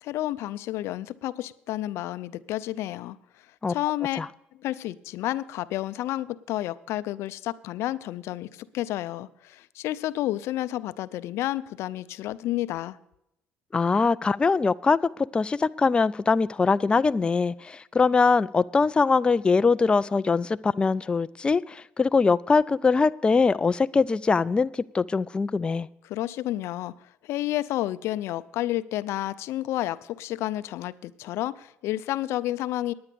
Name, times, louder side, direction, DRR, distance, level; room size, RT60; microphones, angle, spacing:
voice 1, 0.0-3.2 3.7-4.2 4.6-13.0 26.0-26.9 27.2-32.9, left 15 dB, 75° left, 0.5 m, -30 dB
voice 2, 13.7-15.0 15.3-25.9, left 4 dB, 20° left, 0.3 m, -22 dB
9.9 x 9.5 x 6.8 m
cardioid pair, 90°, 5 cm